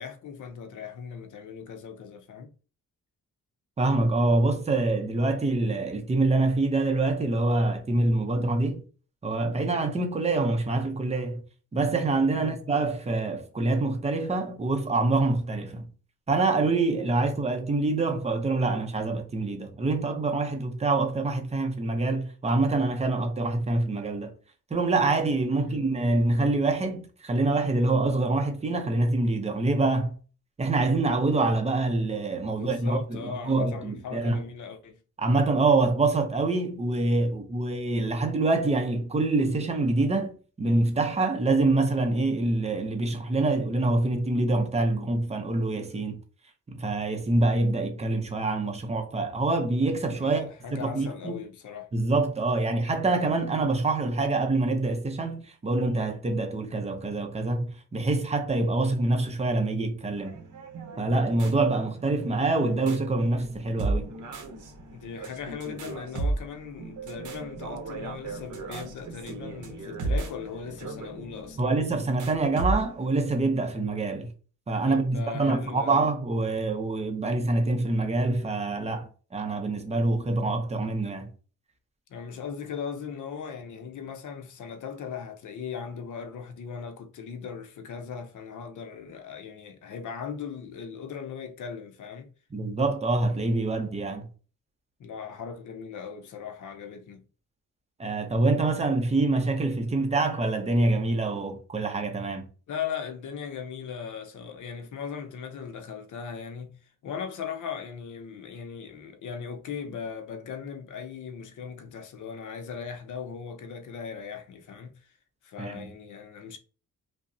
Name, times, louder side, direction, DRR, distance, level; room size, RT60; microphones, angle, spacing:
voice 1, 0.0-2.5 12.3-12.6 25.5-25.9 32.6-35.0 50.1-51.9 64.9-71.7 74.8-76.0 82.1-92.3 95.0-97.2 102.7-115.1 115.4-116.6, left 7 dB, 75° left, 0.7 m, -38 dB
voice 2, 3.8-8.8 9.2-11.4 11.7-15.9 16.3-24.3 24.7-30.2 30.6-34.4 35.2-46.2 46.7-51.4 51.9-60.4 61.0-64.1 71.6-74.3 74.7-81.3 92.5-94.3 98.0-102.5 115.6-115.9, right 2 dB, 20° right, 0.5 m, -25 dB
sound 1, 60.1-73.1, right 2 dB, 70° right, 0.8 m, -35 dB
5.3 x 2.0 x 2.6 m
wide cardioid pair, 175°, 31 cm